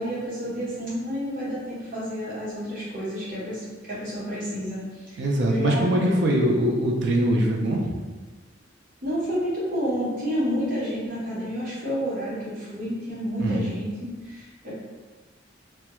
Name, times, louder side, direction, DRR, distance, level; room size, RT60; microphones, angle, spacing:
voice 1, 0.0-6.2 9.0-14.7, equal, 45° right, -8 dB, 0.9 m, -30 dB
voice 2, 5.2-7.9 13.4-13.6, right 1 dB, 60° right, 0 dB, 0.4 m, -22 dB
2.2 x 2.2 x 2.9 m, 1.3 s
head